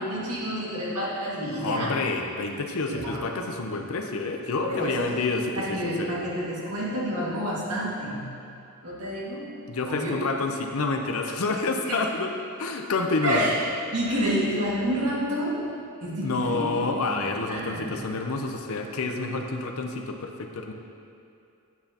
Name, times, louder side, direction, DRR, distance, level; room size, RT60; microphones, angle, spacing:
voice 1, 0.0-1.9 2.9-3.3 4.6-5.2 5.6-8.3 8.8-9.5 9.8-10.2 11.9-12.0 13.2-13.6 13.9-15.7 16.0-16.9 17.5-17.9, equal, 80° right, -6 dB, 2.0 m, -29 dB
voice 2, 1.6-6.1 9.7-12.3 12.6-13.5 16.2-20.7, left 3 dB, 65° left, 4 dB, 0.7 m, -28 dB
9.3 x 7.9 x 2.9 m, 2.6 s
head